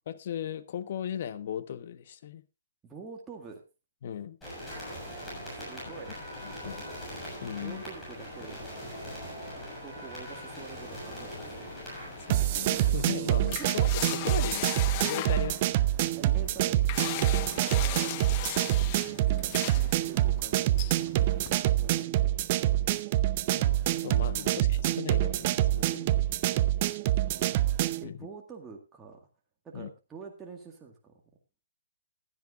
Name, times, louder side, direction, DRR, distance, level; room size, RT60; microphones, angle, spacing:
voice 1, 0.1-2.4 4.0-4.4 6.4-6.9 7.4-7.8 12.2-14.7 15.0-15.7 17.1-17.6 23.5-26.1 28.0-28.3 29.7-29.9, left 9 dB, 45° left, 12 dB, 1.2 m, -38 dB
voice 2, 2.8-3.6 5.4-6.2 7.6-11.8 13.4-13.7 16.2-18.2 18.5-21.3 21.7-23.0 24.3-24.6 27.3-29.3 29.6-31.1, right 5 dB, 10° right, 0 dB, 1.8 m, -48 dB
sound 1, 4.4-12.9, equal, 10° left, 7.2 m, -41 dB
sound 2, 11.1-21.6, left 12 dB, 30° left, 0.9 m, -39 dB
sound 3, 12.3-28.0, right 14 dB, 35° right, 0.6 m, -26 dB
15.5 x 12.5 x 2.5 m, 0.26 s
hypercardioid pair, 155°, 0 cm